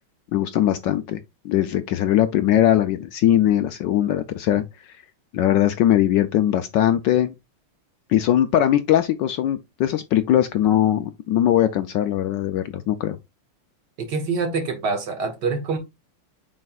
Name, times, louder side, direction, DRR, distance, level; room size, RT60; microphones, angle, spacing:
voice 1, 0.3-1.2 1.4-4.6 5.3-7.3 8.1-13.2, left 11 dB, 75° left, 1.0 m, -20 dB
voice 2, 14.0-15.8, right 4 dB, 55° right, 1.9 m, -25 dB
7.5 x 5.3 x 2.4 m
omnidirectional pair, 2.4 m